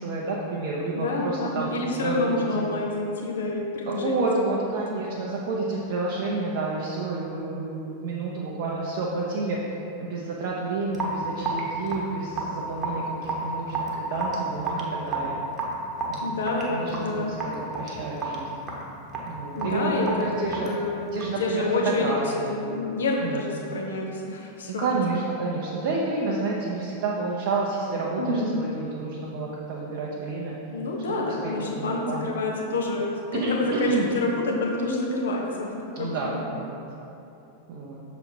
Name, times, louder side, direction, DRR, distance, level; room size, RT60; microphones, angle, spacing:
voice 1, 0.0-1.7 2.0-2.7 3.9-9.6 10.0-15.4 16.1-16.4 16.7-18.6 19.2-20.7 21.1-22.5 23.2-23.5 24.8-30.5 31.1-32.3 33.3-34.1 36.0-36.8 37.7-38.0, right 3 dB, 50° right, -4 dB, 0.7 m, -30 dB
voice 2, 0.9-4.9 16.2-17.4 19.5-22.1 22.5-24.8 28.2-28.6 30.7-36.4, left 2 dB, 65° left, -1 dB, 1.0 m, -28 dB
Raindrop / Drip, 10.9-21.5, right 3 dB, 20° right, 1.1 m, -32 dB
6.7 x 4.1 x 4.6 m, 2.8 s
figure-of-eight pair, 90°, 0 cm